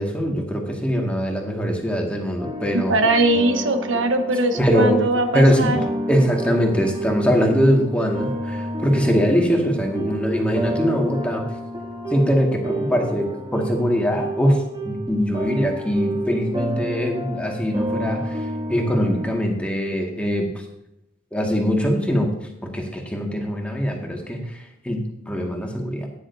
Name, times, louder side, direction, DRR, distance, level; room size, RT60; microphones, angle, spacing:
voice 1, 0.0-2.9 4.6-5.1 5.3-5.8 6.1-11.4 12.1-18.4 18.7-20.5 21.3-22.3 22.6-26.1, equal, 5° left, 0 dB, 1.9 m, -22 dB
sound 1, 2.4-19.5, equal, 20° right, 1.6 m, -30 dB
voice 2, 2.7-5.8, right 2 dB, 75° right, 6 dB, 1.1 m, -21 dB
15.0 x 10.0 x 2.7 m, 0.82 s
head